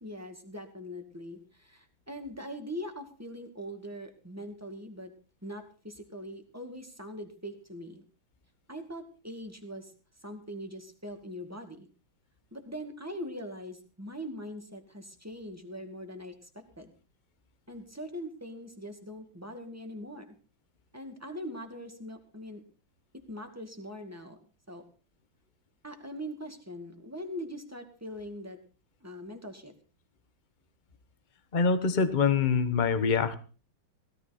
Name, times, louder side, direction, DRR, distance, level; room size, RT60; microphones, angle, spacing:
voice 1, 0.0-5.1 5.4-8.0 8.7-9.9 10.2-11.9 12.5-16.9 17.7-20.4 20.9-22.6 23.1-24.4 24.7-24.8 25.8-28.6 29.0-29.7, equal, 10° right, 4 dB, 2.0 m, -42 dB
voice 2, 31.5-33.3, left 5 dB, 30° left, 11 dB, 1.1 m, -25 dB
16.5 x 13.5 x 4.3 m, 0.36 s
omnidirectional pair, 2.1 m